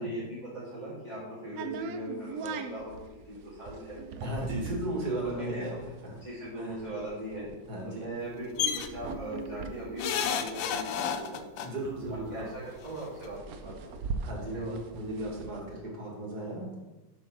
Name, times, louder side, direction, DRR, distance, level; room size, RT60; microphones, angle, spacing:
voice 1, 0.0-4.0 5.5-5.8 6.2-7.5 7.8-11.4 12.1-14.0 14.4-14.8, right 1 dB, 25° right, -10 dB, 2.0 m, -39 dB
sound 1, 1.6-11.1 11.4-11.5 11.7-15.6, right 4 dB, 75° right, 0.8 m, -40 dB
voice 2, 4.2-5.7 6.0-6.1 6.5-6.8 7.7-8.1 11.6-12.3 14.2-16.8, right 1 dB, 55° right, -2 dB, 2.2 m, -35 dB
sound 2, 8.6-8.9 10.0-11.7 12.9-13.0 13.2-13.3, left 8 dB, 80° left, 1.3 m, -30 dB
7.5 x 3.6 x 5.9 m, 1.1 s
omnidirectional pair, 2.1 m